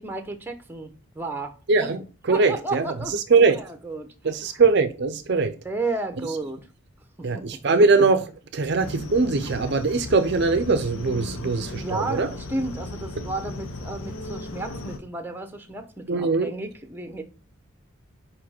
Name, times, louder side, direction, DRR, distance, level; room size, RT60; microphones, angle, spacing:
voice 1, 0.0-1.5 2.3-4.1 5.6-6.6 7.2-7.5 11.7-17.2, right 2 dB, 10° right, 0.8 m, -32 dB
voice 2, 1.7-3.6 4.2-5.6 7.2-12.3 16.1-16.5, right 4 dB, 50° right, 0.5 m, -21 dB
sound 1, 8.8-15.0, left 2 dB, 75° left, 1.0 m, -36 dB
5.1 x 4.8 x 4.2 m
head